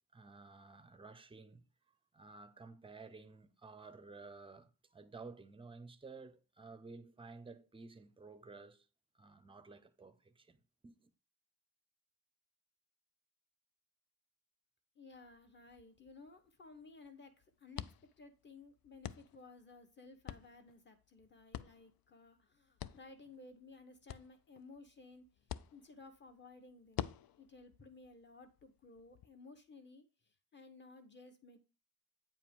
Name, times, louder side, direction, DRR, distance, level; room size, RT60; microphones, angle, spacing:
voice 1, 0.0-1.6 2.1-8.9 9.1-11.1, right 3 dB, 15° right, 0.5 m, -54 dB
voice 2, 14.9-17.9 18.2-27.1 27.4-31.6, left 3 dB, 30° left, 1.0 m, -57 dB
sound 1, 15.1-29.3, left 11 dB, 85° left, 0.5 m, -50 dB
8.9 x 5.0 x 3.6 m
wide cardioid pair, 175°, 35 cm